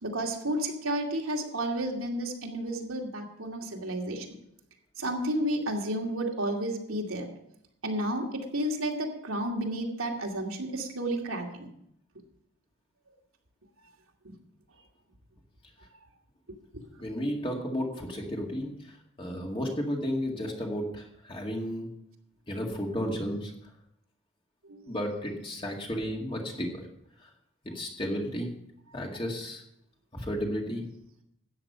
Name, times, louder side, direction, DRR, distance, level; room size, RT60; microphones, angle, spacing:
voice 1, 0.0-4.3 5.0-7.3 7.8-11.7 24.7-24.9, right 1 dB, 80° right, 0 dB, 2.4 m, -31 dB
voice 2, 17.0-21.9 22.5-23.5 24.9-26.9 27.2-27.3 27.6-28.5 28.9-29.6 30.1-30.8, equal, 25° left, 0 dB, 2.1 m, -33 dB
13.5 x 9.0 x 5.6 m, 0.76 s
head